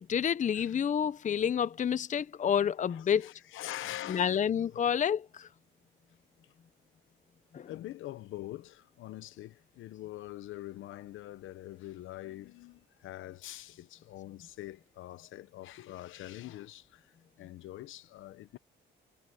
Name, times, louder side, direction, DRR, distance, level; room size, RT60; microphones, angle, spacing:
voice 1, 0.0-3.3 4.1-5.5 7.5-7.7, left 8 dB, 40° left, 0.6 m, -29 dB
voice 2, 2.8-4.9 6.4-6.5 7.7-18.6, left 15 dB, 85° left, 1.0 m, -44 dB
cardioid pair, 90°, 20 cm